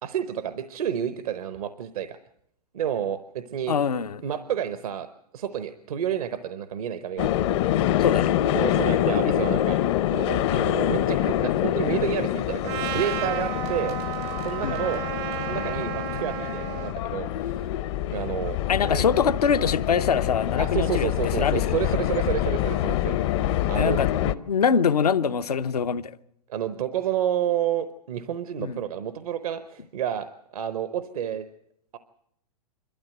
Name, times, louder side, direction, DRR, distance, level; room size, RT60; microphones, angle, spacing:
voice 1, 0.0-2.2 2.7-3.8 4.2-5.1 5.3-7.3 8.5-9.8 10.1-14.0 14.4-15.0 15.4-17.7 18.1-18.6 18.8-19.1 20.6-24.3 26.5-31.4 31.9-32.0, right 9 dB, 70° right, 1.0 m, -30 dB
voice 2, 3.7-4.2 8.0-8.3 14.6-14.7 18.7-21.8 23.7-24.1 24.5-26.1 28.6-28.8, left 7 dB, 85° left, 0.8 m, -24 dB
sound 1, 7.2-24.3, left 12 dB, 45° left, 0.7 m, -26 dB
sound 2, 12.2-15.4, right 5 dB, 90° right, 2.9 m, -50 dB
Trumpet, 12.7-16.9, right 14 dB, 40° right, 0.7 m, -33 dB
26.5 x 12.5 x 7.8 m
hypercardioid pair, 120°, 20 cm